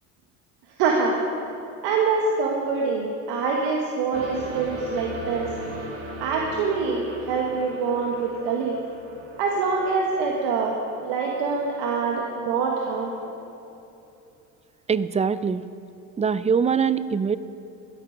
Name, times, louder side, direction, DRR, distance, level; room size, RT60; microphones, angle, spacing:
voice 1, 0.8-1.2 1.8-5.5 6.2-8.8 9.4-13.3, right 4 dB, 85° right, 0 dB, 1.4 m, -25 dB
sound 1, 4.1-12.0 12.8-12.9, right 1 dB, 40° right, 3.1 m, -39 dB
voice 2, 14.9-15.6 16.2-17.4, right 6 dB, 20° right, 15 dB, 0.4 m, -23 dB
13.0 x 12.0 x 5.2 m, 2.8 s
supercardioid pair, 90°, 37 cm